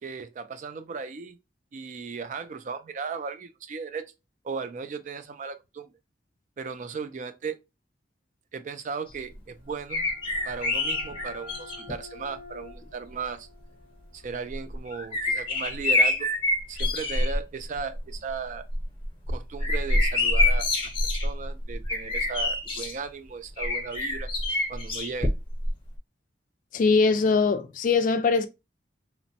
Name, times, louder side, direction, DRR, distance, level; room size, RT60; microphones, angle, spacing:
voice 1, 0.0-1.4 1.7-4.1 4.4-5.9 6.6-7.6 8.5-10.1 10.4-13.5 14.1-16.3 16.7-18.7 19.3-24.3 24.7-25.3, right 5 dB, 45° right, 0.3 m, -36 dB
sound 1, 9.6-15.2, left 3 dB, 75° right, 1.9 m, -48 dB
sound 2, 9.9-12.0 12.8-12.9 14.5-17.4 17.8-18.2 18.6-22.9 23.6-25.7 26.0-26.1, left 2 dB, 30° left, 0.8 m, -26 dB
voice 2, 26.7-28.5, left 4 dB, 45° left, 0.3 m, -22 dB
3.0 x 2.1 x 2.7 m
head